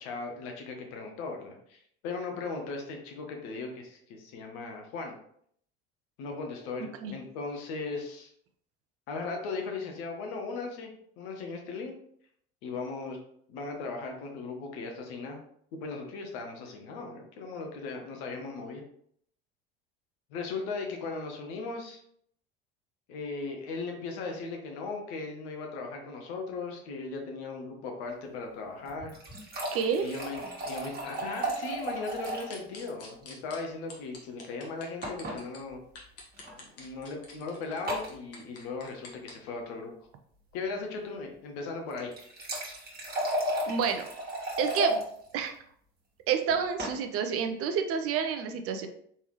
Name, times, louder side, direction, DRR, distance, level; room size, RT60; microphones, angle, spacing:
voice 1, 0.0-5.2 6.2-8.3 9.1-11.9 12.6-13.2 13.5-15.4 15.7-18.8 20.3-22.0 23.1-29.1 30.0-35.8 36.8-39.9 40.5-42.1, left 4 dB, 65° left, 2 dB, 1.2 m, -38 dB
sound 1, 28.9-32.6 32.9-33.0 33.2-33.3 35.0-35.4 36.3-36.5 37.9-38.1 41.9-45.0 46.5-47.0, right 1 dB, 30° right, 1.8 m, -33 dB
voice 2, 29.7-30.1 43.7-44.1 44.6-45.0 45.3-45.5 46.3-48.9, right 7 dB, 45° right, 6 dB, 0.7 m, -29 dB
sound 2, 32.3-33.6 33.9-35.6 36.0-39.3, left 4 dB, 50° left, 1.5 m, -47 dB
4.4 x 3.5 x 3.0 m, 0.66 s
hypercardioid pair, 75°, 32 cm